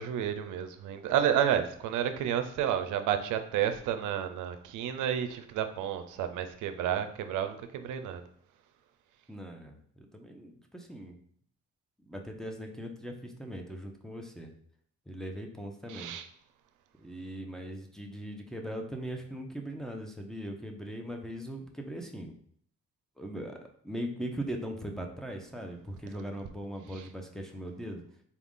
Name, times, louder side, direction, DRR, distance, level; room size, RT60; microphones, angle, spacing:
voice 1, 0.0-8.2 15.9-16.2 27.0-27.1, right 9 dB, 85° right, 9 dB, 0.5 m, -31 dB
voice 2, 9.3-11.2 12.1-14.5 15.1-16.1 17.0-22.3 23.2-23.6 23.8-28.0, equal, ahead, 2 dB, 0.6 m, -40 dB
4.1 x 2.4 x 3.6 m, 0.63 s
cardioid pair, 90°, 30 cm